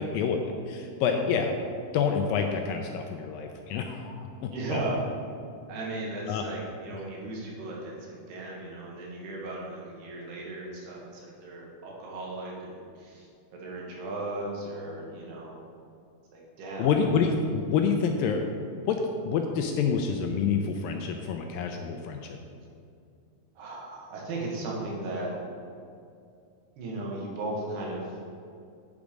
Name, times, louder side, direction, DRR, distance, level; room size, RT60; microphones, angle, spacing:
voice 1, 0.0-1.5 1.9-4.9 6.3-6.5 16.8-22.4, left 6 dB, 85° left, 4 dB, 2.1 m, -28 dB
voice 2, 4.5-5.0 5.7-15.5 16.3-17.2 23.6-25.3 26.8-28.1, right 2 dB, 90° right, -3 dB, 3.8 m, -36 dB
8.9 x 7.0 x 5.1 m, 2.4 s
omnidirectional pair, 4.5 m